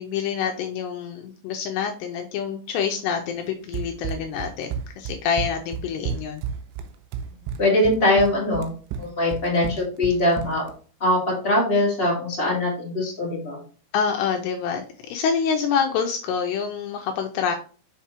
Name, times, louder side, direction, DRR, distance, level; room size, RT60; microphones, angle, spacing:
voice 1, 0.0-6.4 13.9-17.6, left 7 dB, 85° left, 4 dB, 2.5 m, -26 dB
Run, 3.7-10.8, right 7 dB, 80° right, 2.8 m, -32 dB
voice 2, 7.6-8.7 9.0-10.7 11.0-13.6, left 1 dB, 60° left, -4 dB, 0.6 m, -22 dB
6.5 x 5.6 x 2.9 m, 0.39 s
omnidirectional pair, 5.3 m